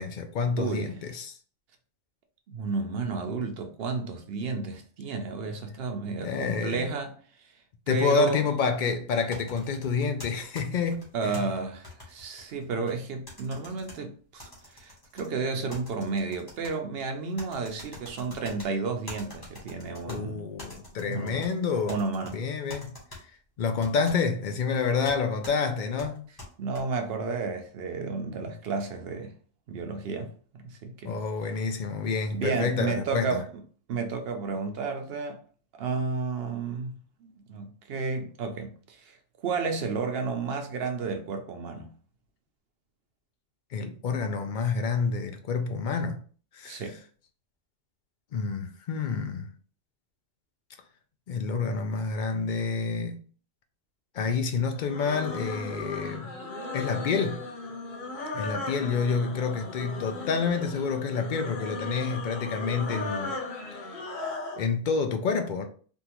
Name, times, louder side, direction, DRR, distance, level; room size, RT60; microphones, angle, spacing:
voice 1, 0.0-1.4 6.2-6.9 7.9-11.5 20.0-22.0 22.3-23.0 23.6-26.3 31.0-33.4 43.7-46.2 46.5-46.8 48.3-49.5 51.3-53.2 54.1-56.3 56.7-57.4 58.3-63.4 63.7-64.0 64.6-65.7, left 5 dB, 60° left, 0.5 m, -28 dB
voice 2, 0.6-0.9 2.5-7.1 7.9-8.4 11.1-20.5 21.0-21.5 21.9-22.4 26.6-29.3 29.7-31.2 32.3-33.4 33.9-35.4 35.7-41.9 46.6-47.0, right 4 dB, 60° right, 0.8 m, -32 dB
sound 1, 9.3-11.4 11.8-13.0 13.3-14.0 14.4-15.3 15.7-16.7 17.4-18.7 19.1-20.2 20.6-21.5 21.9-22.3 22.7-23.2 23.8-24.2 25.0-25.2 25.4-25.5 26.0-26.8, left 1 dB, 20° left, 1.1 m, -45 dB
sound 2, 54.7-64.7, left 3 dB, 45° left, 1.1 m, -37 dB
3.6 x 2.4 x 2.9 m
omnidirectional pair, 1.3 m